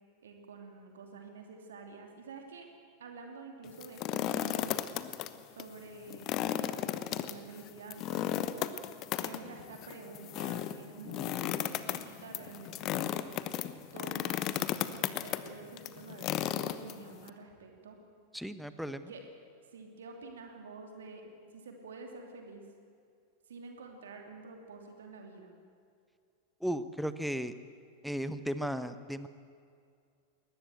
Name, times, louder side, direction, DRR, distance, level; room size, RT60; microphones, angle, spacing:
voice 1, 0.2-2.7 3.0-4.8 5.5-6.4 7.1-8.7 9.2-13.4 13.9-18.0 19.1-19.2 19.7-22.6 23.5-25.5, right 4 dB, 65° right, 3 dB, 2.8 m, -48 dB
sound 1, 3.7-5.3 5.6-5.7 6.1-17.3, left 12 dB, 35° left, 1.0 m, -34 dB
voice 2, 18.3-19.1 26.6-27.5 28.0-29.3, equal, ahead, 12 dB, 1.0 m, -35 dB
21.5 x 19.5 x 7.9 m, 2.3 s
figure-of-eight pair, 90°, 0 cm